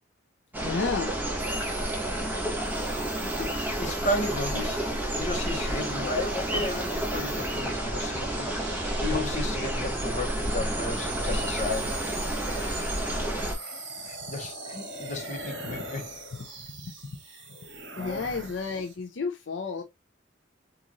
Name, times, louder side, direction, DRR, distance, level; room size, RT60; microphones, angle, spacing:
sound 1, 0.5-13.5, right 1 dB, 10° right, 1.0 m, -30 dB
voice 1, 0.6-1.1 15.6-15.8 16.8-17.2 18.0-19.8, left 4 dB, 70° left, 0.5 m, -32 dB
sound 2, 1.4-18.9, right 3 dB, 75° right, 1.2 m, -42 dB
voice 2, 3.4-8.5 9.0-12.0 12.3-12.9 13.6-13.8 14.0-16.0 17.3-17.4 18.0-18.5, left 2 dB, 40° left, 1.0 m, -34 dB
3.8 x 2.5 x 2.9 m
head